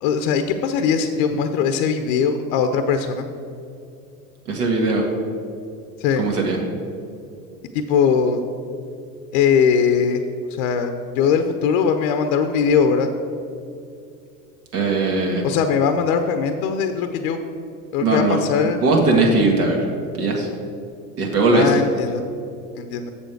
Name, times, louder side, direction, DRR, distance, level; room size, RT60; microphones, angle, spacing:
voice 1, 0.0-3.3 6.0-6.2 7.7-8.4 9.3-10.2 10.6-13.1 15.4-17.4 17.9-18.8 21.5-22.2 22.7-23.1, left 6 dB, 55° left, 7 dB, 0.7 m, -20 dB
voice 2, 4.5-5.1 6.1-6.6 14.7-15.4 18.0-18.4 18.6-19.9 20.2-20.5 21.2-21.8, right 2 dB, 75° right, 0 dB, 1.9 m, -19 dB
7.4 x 7.0 x 4.6 m, 2.5 s
hypercardioid pair, 85°, 46 cm